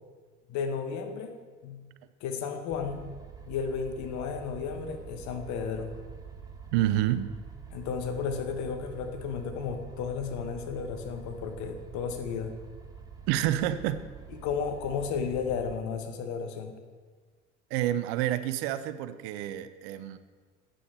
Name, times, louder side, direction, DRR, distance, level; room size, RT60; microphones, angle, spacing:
voice 1, 0.5-1.3 1.6-1.9 2.2-3.0 3.5-5.9 7.7-12.6 14.3-16.7, left 6 dB, 50° left, 1.1 m, -33 dB
sound 1, 2.7-15.8, right 6 dB, 10° right, 1.1 m, -46 dB
voice 2, 6.7-7.3 13.3-14.0 17.7-20.2, right 13 dB, 60° right, 0.5 m, -28 dB
9.0 x 6.5 x 4.3 m
hypercardioid pair, 70°, 36 cm